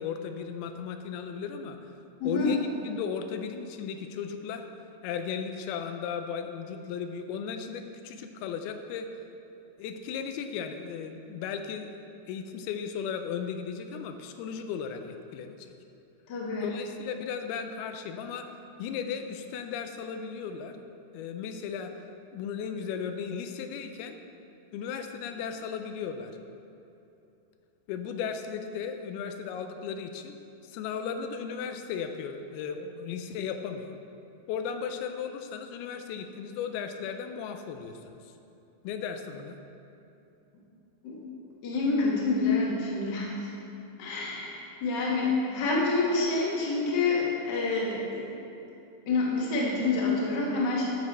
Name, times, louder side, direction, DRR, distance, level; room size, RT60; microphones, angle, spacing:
voice 1, 0.0-1.8 2.2-4.7 5.0-9.1 9.8-11.9 12.3-15.8 16.6-18.5 18.8-20.8 21.1-21.9 22.3-24.2 24.7-26.3 27.9-30.4 30.6-34.0 34.5-38.3 38.8-39.6, left 7 dB, 85° left, 7 dB, 2.5 m, -36 dB
voice 2, 2.2-2.5 16.3-16.7 41.0-41.2 41.6-43.5 44.0-48.3 49.0-50.9, left 3 dB, 55° left, -5 dB, 1.2 m, -27 dB
12.5 x 5.1 x 4.1 m, 2.9 s
omnidirectional pair, 4.4 m